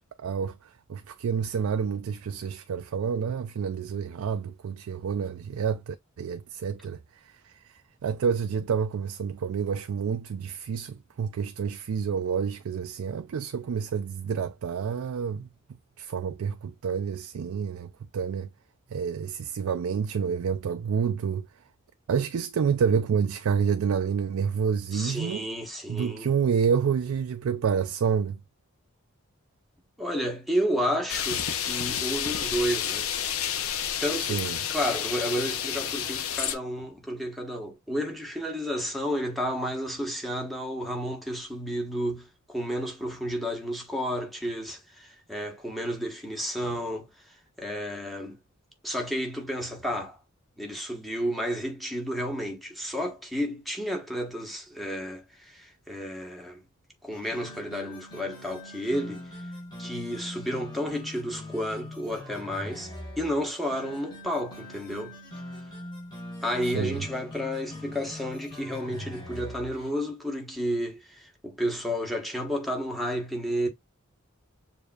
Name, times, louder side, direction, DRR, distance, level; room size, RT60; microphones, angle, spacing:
voice 1, 0.2-15.5 16.0-18.5 18.9-21.5 22.1-25.4 25.9-28.4 34.1-34.6 66.6-67.0, right 6 dB, 85° right, 0.4 m, -29 dB
voice 2, 24.9-26.3 30.0-33.1 34.0-48.4 48.8-50.2 50.6-56.6 57.0-59.3 59.8-65.2 66.4-73.7, equal, ahead, 1.1 m, -31 dB
sound 1, 31.1-36.6, left 9 dB, 75° left, 0.7 m, -30 dB
sound 2, 57.1-69.9, left 1 dB, 20° left, 1.9 m, -42 dB
6.6 x 2.7 x 2.3 m
head